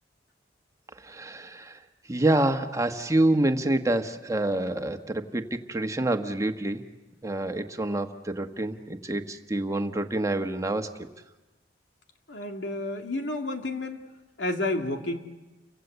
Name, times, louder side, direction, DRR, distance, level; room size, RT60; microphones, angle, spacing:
voice 1, 1.0-1.8 2.1-6.8 7.2-10.9, right 1 dB, 20° right, 6 dB, 1.3 m, -27 dB
voice 2, 12.3-14.0 14.4-15.2, left 2 dB, 90° left, 4 dB, 2.7 m, -30 dB
30.0 x 24.5 x 8.2 m, 1.1 s
head